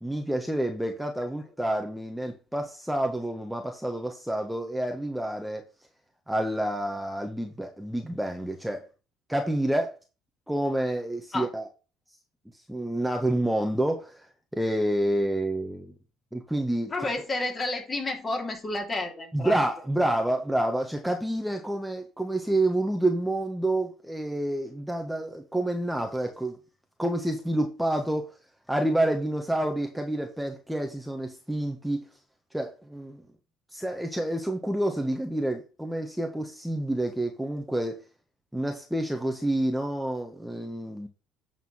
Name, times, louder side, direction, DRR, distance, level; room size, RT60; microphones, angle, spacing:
voice 1, 0.0-5.6 6.3-8.9 9.3-10.0 10.5-11.7 12.7-14.3 14.5-15.9 16.3-17.1 19.3-26.6 27.0-28.3 28.7-32.0 32.5-33.2 33.7-38.0 38.5-41.1, right 1 dB, 5° right, 1.5 m, -28 dB
voice 2, 16.9-19.6, left 2 dB, 30° left, 3.1 m, -30 dB
9.4 x 4.3 x 5.6 m
supercardioid pair, 70°, 0 cm